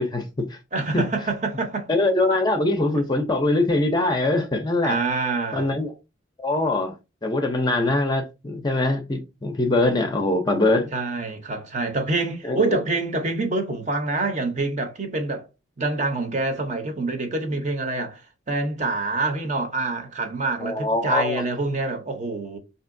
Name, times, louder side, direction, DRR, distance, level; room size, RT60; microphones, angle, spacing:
voice 1, 0.0-0.6 0.9-1.1 1.9-5.0 5.5-5.9 6.4-7.0 7.2-10.9 12.4-12.7 20.6-21.4, left 2 dB, 20° left, 0.5 m, -22 dB
voice 2, 0.7-1.9 4.8-5.8 10.9-15.4 15.8-18.2 18.5-22.6, right 3 dB, 35° right, 0.7 m, -26 dB
5.3 x 2.8 x 2.5 m
head